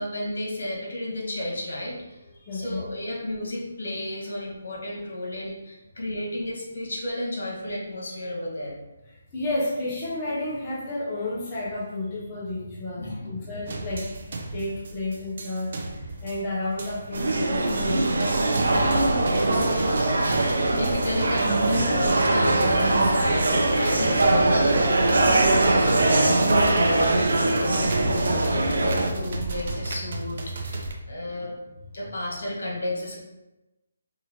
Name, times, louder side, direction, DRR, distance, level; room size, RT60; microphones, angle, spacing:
voice 1, 0.0-2.2 2.5-8.7 13.0-13.3 18.6-20.1 20.4-27.3 27.5-31.6 31.9-33.2, left 1 dB, 75° left, -3 dB, 1.5 m, -33 dB
voice 2, 2.4-2.8 9.3-14.1 14.5-15.7 16.2-18.0, left 2 dB, 15° left, -8 dB, 0.7 m, -31 dB
sound 1, 13.7-30.9, right 2 dB, 45° right, 0.5 m, -33 dB
sound 2, 17.1-29.1, right 2 dB, 90° right, 0.6 m, -22 dB
4.6 x 2.5 x 2.9 m, 1.0 s
hypercardioid pair, 170°, 0 cm